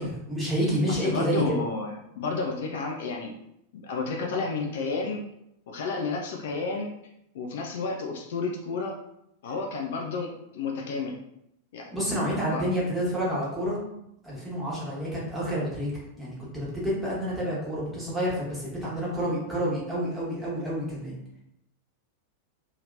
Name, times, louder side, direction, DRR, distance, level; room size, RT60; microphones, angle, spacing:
voice 1, 0.0-1.6 11.9-13.8 14.2-15.9 16.2-21.1, equal, ahead, -8 dB, 1.4 m, -29 dB
voice 2, 0.9-3.3 3.8-5.2 5.7-6.9 7.3-8.9 9.4-10.3 10.5-11.2 11.7-12.0 12.4-12.7, left 4 dB, 55° left, 1 dB, 0.4 m, -31 dB
2.9 x 2.8 x 2.5 m, 0.80 s
figure-of-eight pair, 90°, 0 cm